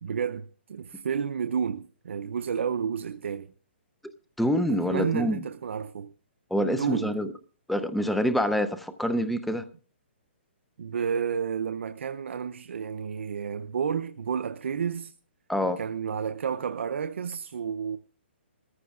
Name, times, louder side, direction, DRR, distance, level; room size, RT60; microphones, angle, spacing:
voice 1, 0.0-3.5 4.8-6.1 6.7-7.1 10.8-15.1 15.8-18.0, right 7 dB, 75° right, 0.6 m, -31 dB
voice 2, 4.4-5.4 6.5-7.3 7.7-9.7 15.5-15.8, equal, ahead, 0.5 m, -26 dB
21.0 x 14.5 x 2.4 m
hypercardioid pair, 165°, 7 cm